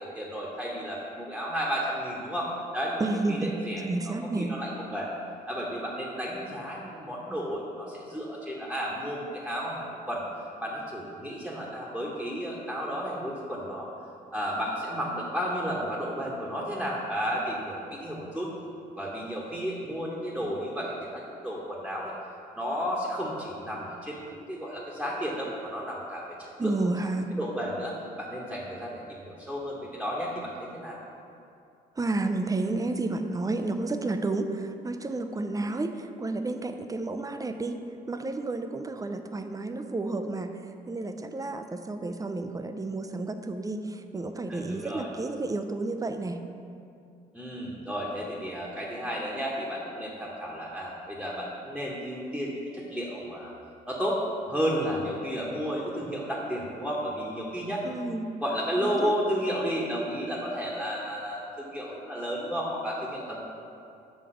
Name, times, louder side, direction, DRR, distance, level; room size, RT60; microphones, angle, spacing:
voice 1, 0.0-5.1 5.5-10.2 10.6-13.9 14.3-18.5 19.0-22.1 22.6-26.7 27.0-31.0 44.5-45.1 47.3-53.5 53.9-54.2 54.5-57.8 58.4-63.4, equal, ahead, -4 dB, 1.1 m, -32 dB
voice 2, 3.0-3.5 3.8-4.5 26.6-27.4 32.0-37.8 38.1-40.6 40.9-46.4 57.8-58.3 58.8-59.2, right 2 dB, 15° right, 7 dB, 0.4 m, -31 dB
5.9 x 3.6 x 5.0 m, 2.5 s
hypercardioid pair, 50°, 20 cm